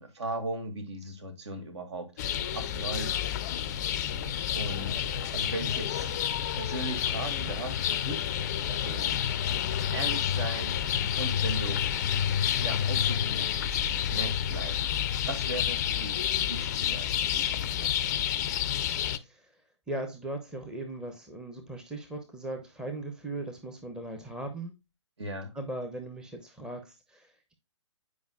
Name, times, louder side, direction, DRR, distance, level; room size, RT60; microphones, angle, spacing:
voice 1, 0.0-2.1 2.5-3.3 3.7-3.8 4.5-5.1 5.3-6.1 6.5-9.2 9.9-10.8 11.2-11.9 12.6-13.8 14.1-14.9 15.2-18.3 25.2-25.5, right 1 dB, 60° right, 2.1 m, -38 dB
sound 1, 2.2-19.2, left 9 dB, 35° left, 0.5 m, -29 dB
voice 2, 19.2-19.6 19.9-24.7 25.5-27.5, right 2 dB, 5° right, 0.9 m, -38 dB
9.3 x 5.1 x 2.3 m
figure-of-eight pair, 130°, 16 cm